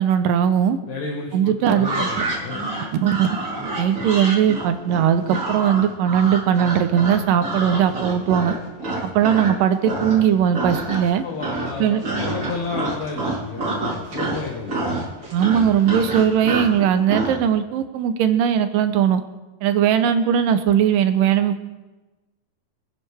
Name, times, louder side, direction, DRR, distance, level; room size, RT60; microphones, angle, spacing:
voice 1, 0.0-0.8 1.3-2.2 3.0-3.3 3.8-8.5 9.0-11.2 11.8-12.0 15.3-19.2 19.6-21.6, right 9 dB, 80° right, 9 dB, 2.4 m, -19 dB
voice 2, 0.9-2.7 3.9-4.1 11.2-15.0, left 4 dB, 60° left, 0 dB, 2.4 m, -32 dB
sound 1, 1.7-9.6 9.8-10.3 10.5-11.1 11.4-17.4, right 2 dB, 30° right, 3.8 m, -27 dB
26.0 x 10.0 x 3.4 m, 1.1 s
omnidirectional pair, 4.1 m